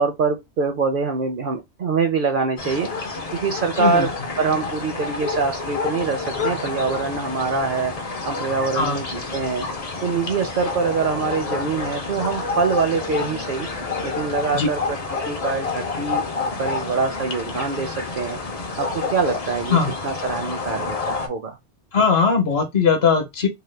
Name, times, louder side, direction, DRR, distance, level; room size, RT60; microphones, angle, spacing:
voice 1, 0.0-2.9 3.3-4.1 4.4-7.9 8.2-9.7 10.0-13.7 14.0-15.0 15.2-16.2 16.6-18.4 18.8-19.8 20.0-21.6, right 5 dB, 60° right, 0.6 m, -24 dB
sound 1, 2.6-21.3, left 4 dB, 45° left, 0.5 m, -29 dB
voice 2, 3.8-4.1 8.7-9.0 14.5-14.7 19.7-19.9 21.9-23.5, left 5 dB, 60° left, 1.1 m, -19 dB
2.9 x 2.2 x 3.2 m
omnidirectional pair, 1.2 m